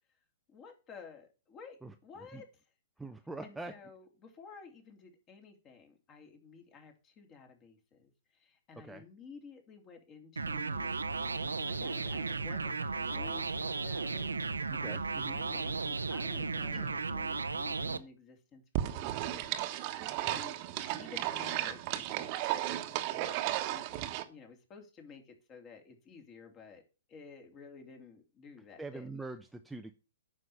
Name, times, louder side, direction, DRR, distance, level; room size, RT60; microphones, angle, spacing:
voice 1, 0.5-2.5 3.4-14.4 14.8-18.6 18.9-26.8 27.1-29.1, left 5 dB, 30° left, 4 dB, 3.0 m, -53 dB
voice 2, 3.0-3.7 8.8-9.0 14.7-15.4 16.7-16.9 28.8-29.9, right 2 dB, 5° right, 6 dB, 0.7 m, -43 dB
sound 1, 10.4-18.0, right 4 dB, 85° right, 0.8 m, -35 dB
sound 2, 18.8-24.2, right 14 dB, 40° right, 1.3 m, -34 dB
9.6 x 6.3 x 6.7 m, 0.32 s
figure-of-eight pair, 115°, 0 cm